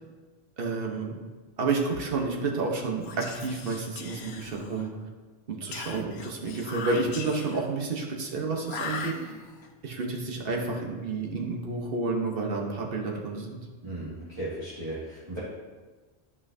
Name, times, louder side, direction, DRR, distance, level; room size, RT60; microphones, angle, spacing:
voice 1, 0.6-1.2 1.6-4.9 5.5-9.1 9.8-13.6, right 3 dB, 55° right, 0 dB, 1.2 m, -30 dB
Whispering, 3.0-5.0 5.7-7.7 8.6-9.7, left 4 dB, 70° left, 1.0 m, -39 dB
voice 2, 13.8-15.4, right 1 dB, 25° right, -11 dB, 2.1 m, -36 dB
12.0 x 5.6 x 2.7 m, 1.3 s
omnidirectional pair, 1.2 m